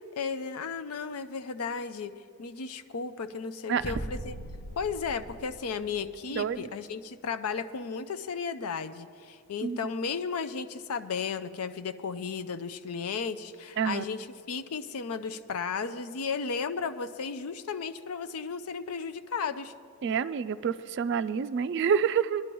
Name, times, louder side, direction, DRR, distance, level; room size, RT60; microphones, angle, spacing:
voice 1, 0.2-2.1 2.4-4.4 4.8-19.7, left 5 dB, 85° left, 10 dB, 0.5 m, -34 dB
sound 1, 3.8-6.4, equal, 25° left, 0.6 m, -40 dB
voice 2, 6.3-6.7 9.6-9.8 13.8-14.0 20.0-22.4, right 7 dB, 55° right, 12 dB, 0.3 m, -28 dB
20.0 x 11.0 x 3.0 m, 2.4 s
head